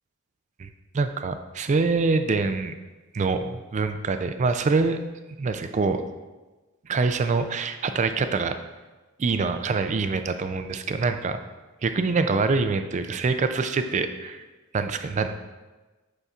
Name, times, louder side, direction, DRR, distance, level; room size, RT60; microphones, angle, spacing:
voice 1, 0.9-2.7 3.1-5.0 5.4-6.0 6.8-8.6 9.2-11.4 11.8-14.4 14.7-15.3, right 4 dB, 35° right, 9 dB, 0.3 m, -25 dB
8.1 x 5.6 x 2.4 m, 1.2 s
head